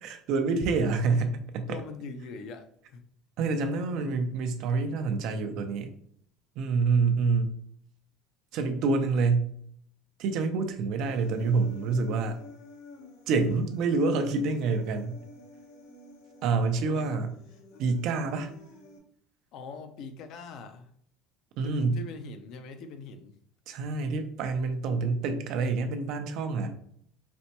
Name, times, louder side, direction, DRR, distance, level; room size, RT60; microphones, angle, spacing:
voice 1, 0.0-1.8 3.4-5.9 6.6-7.6 8.5-9.5 10.2-12.4 13.3-15.2 16.4-17.3 17.8-18.5 21.6-22.0 23.7-26.7, right 4 dB, 60° right, 7 dB, 0.5 m, -27 dB
voice 2, 1.7-3.0 3.9-4.1 16.9-17.2 19.5-20.9 21.6-23.3, left 4 dB, 55° left, 8 dB, 0.5 m, -42 dB
Human voice, 11.0-19.0, left 2 dB, 80° left, 0.8 m, -51 dB
4.2 x 2.1 x 2.8 m, 0.64 s
cardioid pair, 130°, 0 cm